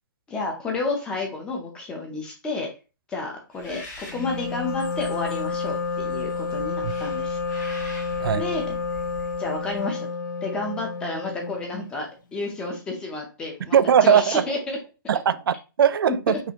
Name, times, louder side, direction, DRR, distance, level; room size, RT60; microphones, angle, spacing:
voice 1, 0.3-2.7 3.1-7.4 8.3-8.7 9.4-10.1 10.4-14.8 16.3-16.4, left 3 dB, 5° left, 0.6 m, -31 dB
Bird, 3.5-9.9, left 3 dB, 45° left, 2.1 m, -42 dB
Wind instrument woodwind instrument, 4.1-11.9, left 4 dB, 60° left, 0.7 m, -30 dB
voice 2, 13.7-14.4 15.1-16.4, right 8 dB, 85° right, 0.4 m, -19 dB
5.4 x 2.6 x 2.8 m
hypercardioid pair, 175°, 12 cm